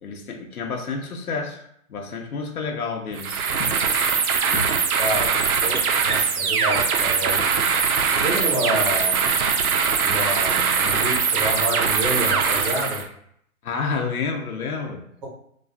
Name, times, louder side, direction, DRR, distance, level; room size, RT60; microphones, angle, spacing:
voice 1, 0.0-3.8 4.5-4.7 13.6-15.0, left 4 dB, 90° left, 2 dB, 0.6 m, -30 dB
sound 1, 3.1-13.1, right 6 dB, 90° right, 0.5 m, -21 dB
voice 2, 5.6-7.6 8.2-9.3 10.0-13.0, right 1 dB, 25° right, -4 dB, 0.8 m, -28 dB
2.5 x 2.3 x 2.2 m, 0.68 s
hypercardioid pair, 150°, 42 cm